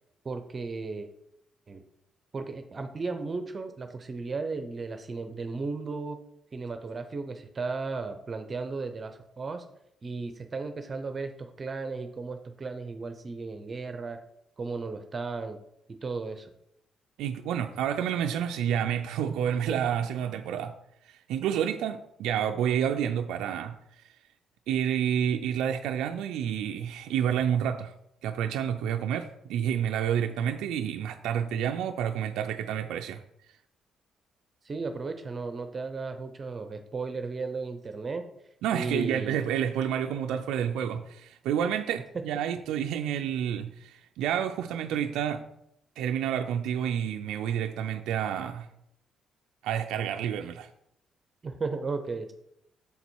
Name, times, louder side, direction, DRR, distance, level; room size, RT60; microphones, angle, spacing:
voice 1, 0.2-1.1 1.7-1.8 2.3-6.2 6.5-9.6 10.0-14.2 14.6-15.6 16.0-16.5 34.6-38.2 38.7-39.4 42.1-42.2 51.4-52.3, right 4 dB, 35° right, 0.6 m, -35 dB
voice 2, 17.2-20.7 21.1-23.7 24.7-27.9 28.2-33.2 38.6-45.5 46.0-48.7 49.6-50.7, right 9 dB, 90° right, 0.3 m, -29 dB
7.1 x 4.1 x 4.5 m
cardioid pair, 90°, 0 cm